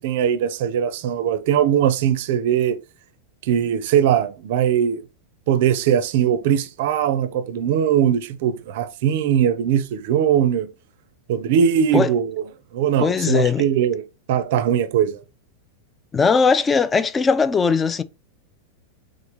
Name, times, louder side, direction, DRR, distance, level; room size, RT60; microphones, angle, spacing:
voice 1, 0.0-2.8 3.4-5.0 5.5-10.7 11.3-12.4 12.7-15.2, right 9 dB, 50° right, 0.5 m, -20 dB
voice 2, 13.0-13.6 16.1-18.0, left 5 dB, 20° left, 0.3 m, -19 dB
3.8 x 3.5 x 3.1 m
figure-of-eight pair, 90°, 0 cm